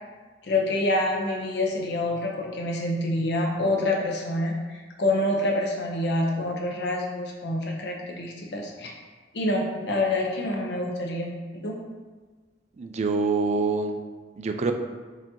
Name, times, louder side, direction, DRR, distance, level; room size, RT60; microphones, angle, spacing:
voice 1, 0.4-8.9 9.3-11.8, left 1 dB, 70° left, 0 dB, 0.8 m, -27 dB
voice 2, 12.8-13.9 14.4-14.7, right 4 dB, 40° right, 6 dB, 0.3 m, -25 dB
5.1 x 2.8 x 3.7 m, 1.4 s
head